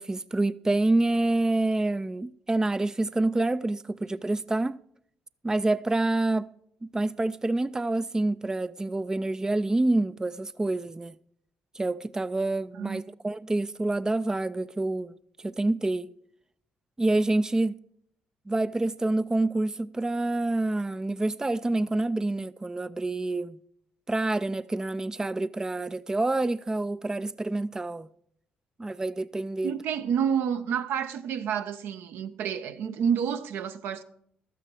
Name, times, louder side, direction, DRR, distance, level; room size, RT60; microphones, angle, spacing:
voice 1, 0.0-4.8 5.4-6.5 6.9-11.2 11.7-15.2 15.4-16.1 17.0-17.8 18.5-23.6 24.1-28.1 28.8-29.7, right 2 dB, 15° right, 0.4 m, -27 dB
voice 2, 12.7-13.1 29.6-34.0, right 8 dB, 75° right, 0.7 m, -29 dB
12.5 x 9.0 x 4.7 m
hypercardioid pair, 55°, 4 cm